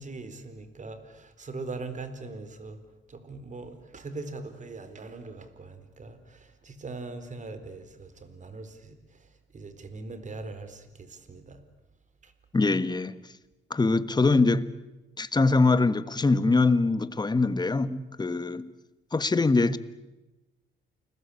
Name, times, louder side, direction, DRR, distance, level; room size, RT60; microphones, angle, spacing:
voice 1, 0.0-2.8 3.1-11.6 12.2-12.3, right 3 dB, 40° right, 4.1 m, -41 dB
voice 2, 12.5-13.3 13.7-14.6 15.2-18.7 19.1-19.8, left 3 dB, 20° left, 1.5 m, -23 dB
29.5 x 21.0 x 8.6 m
cardioid pair, 90°, 20 cm